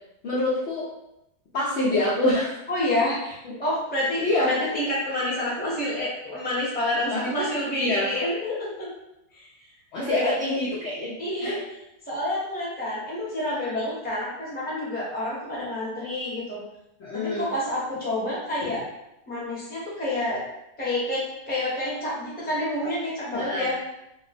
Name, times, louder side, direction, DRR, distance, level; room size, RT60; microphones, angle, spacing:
voice 1, 0.2-0.9 1.5-2.5 3.4-3.6 4.2-4.5 7.1-7.3 7.8-8.1 9.9-11.1 11.4-11.6 17.0-17.5 23.3-23.7, left 1 dB, 60° left, -6 dB, 0.7 m, -25 dB
voice 2, 2.7-3.2 3.6-8.9 9.3-9.4 9.9-10.2 11.2-11.8 12.1-16.6 17.1-18.8 19.3-20.4 20.8-23.8, left 1 dB, 10° left, -7 dB, 0.7 m, -28 dB
2.9 x 2.1 x 4.0 m, 0.86 s
omnidirectional pair, 1.8 m